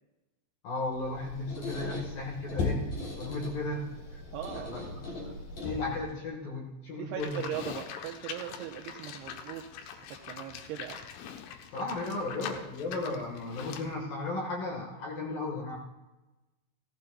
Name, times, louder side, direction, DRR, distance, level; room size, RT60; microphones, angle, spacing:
voice 1, 0.6-2.9 3.2-4.2 4.5-4.8 5.6-7.4 11.7-15.8, left 2 dB, 60° left, -1 dB, 2.7 m, -35 dB
Squeak, 0.9-6.2, left 2 dB, 45° left, 4.7 m, -37 dB
voice 2, 4.3-4.8 5.2-5.4 7.0-11.0, right 11 dB, 85° right, 2 dB, 2.3 m, -40 dB
Livestock farm animals working animals, 7.2-13.9, left 8 dB, 80° left, 3.3 m, -43 dB
17.5 x 15.0 x 2.3 m, 1.1 s
omnidirectional pair, 5.6 m